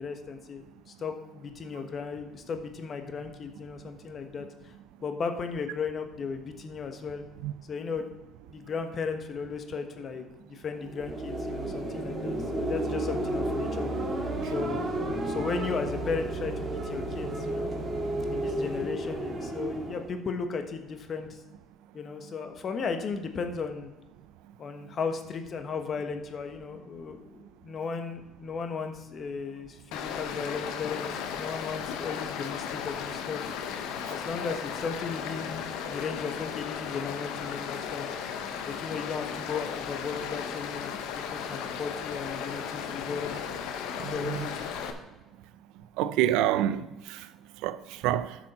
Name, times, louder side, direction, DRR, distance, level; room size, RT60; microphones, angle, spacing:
voice 1, 0.0-4.7 5.0-7.2 7.7-8.1 8.5-13.9 14.4-14.9 15.2-17.7 18.3-21.3 21.9-23.9 24.6-33.4 34.1-38.1 38.6-41.0 41.3-43.4 44.0-44.7, left 5 dB, 45° left, 1.2 m, -35 dB
sound 1, 10.8-20.1, right 1 dB, 35° right, 2.2 m, -32 dB
Stream, 29.9-44.9, left 7 dB, 80° left, 0.9 m, -35 dB
voice 2, 44.0-44.5 46.0-47.3 47.6-48.4, right 12 dB, 80° right, 0.4 m, -28 dB
11.0 x 6.3 x 4.3 m
supercardioid pair, 80°, 0 cm